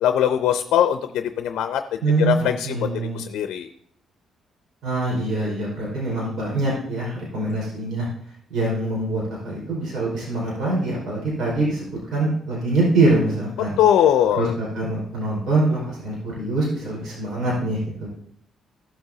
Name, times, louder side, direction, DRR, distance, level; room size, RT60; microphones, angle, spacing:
voice 1, 0.0-1.8 2.2-2.9 3.1-3.7 13.8-14.5, left 10 dB, 80° left, 8 dB, 0.5 m, -20 dB
voice 2, 2.0-3.2 4.8-8.1 8.5-13.8 14.4-18.1, right 2 dB, 70° right, -5 dB, 5.0 m, -24 dB
16.0 x 7.8 x 2.8 m, 0.67 s
cardioid pair, 90°, 0 cm